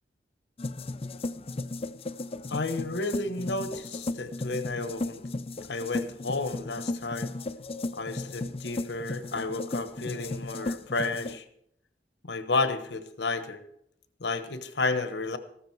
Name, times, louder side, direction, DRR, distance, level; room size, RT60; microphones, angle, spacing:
sound 1, 0.6-11.4, left 2 dB, 35° left, 0.5 m, -35 dB
voice 1, 2.5-5.3 5.7-7.3 7.9-11.4 12.2-13.6 14.2-15.4, left 3 dB, 80° left, 10 dB, 1.2 m, -31 dB
14.5 x 13.0 x 4.7 m, 0.74 s
head